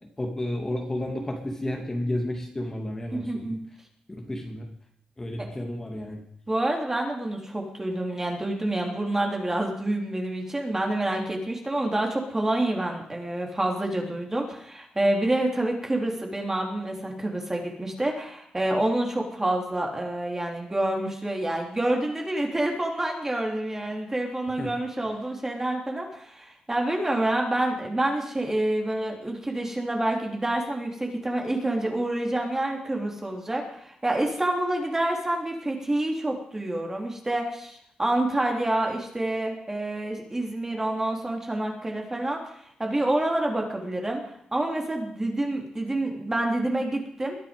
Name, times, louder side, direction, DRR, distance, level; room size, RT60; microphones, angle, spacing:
voice 1, 0.0-3.5 4.1-4.7 5.2-6.2 24.6-24.7, left 1 dB, 20° left, 1 dB, 2.9 m, -32 dB
voice 2, 3.1-3.6 5.4-5.5 6.5-42.4 42.8-44.2 44.5-47.4, right 1 dB, 15° right, 1 dB, 3.6 m, -27 dB
22.0 x 10.0 x 5.3 m, 0.70 s
cardioid pair, 105°, 3 cm